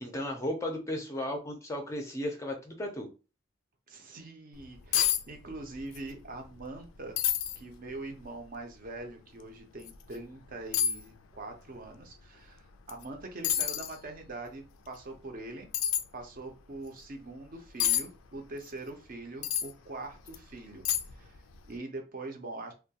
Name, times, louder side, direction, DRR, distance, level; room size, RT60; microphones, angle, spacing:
voice 1, 0.0-3.1, left 1 dB, 15° left, 3 dB, 0.4 m, -35 dB
voice 2, 3.9-7.2 7.6-15.7 16.1-22.7, right 2 dB, 45° right, 4 dB, 0.5 m, -43 dB
sound 1, 4.6-4.7 4.9-5.2 5.5-6.1 6.4-6.5 7.2-7.6 8.2-8.3 9.8-10.0 10.7-11.0 12.9-13.0 13.4-13.9 15.7-16.0 17.8-18.0 19.4-19.7 20.3-20.4 20.8-21.3 21.5-21.7, left 10 dB, 85° left, 0.3 m, -28 dB
2.2 x 2.1 x 2.8 m, 0.32 s
head